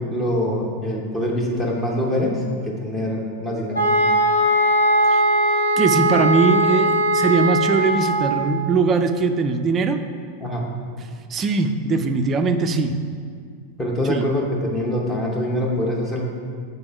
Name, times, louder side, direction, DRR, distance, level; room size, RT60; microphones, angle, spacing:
voice 1, 0.0-3.8 10.4-10.7 13.8-16.2, left 1 dB, 15° left, -2 dB, 0.9 m, -24 dB
sound 1, 3.7-8.4, right 1 dB, 75° left, 1.2 m, -19 dB
voice 2, 5.8-10.0 11.3-13.1 14.1-14.2, right 4 dB, 25° right, 8 dB, 0.4 m, -21 dB
5.2 x 4.0 x 5.7 m, 2.1 s
figure-of-eight pair, 90°, 0 cm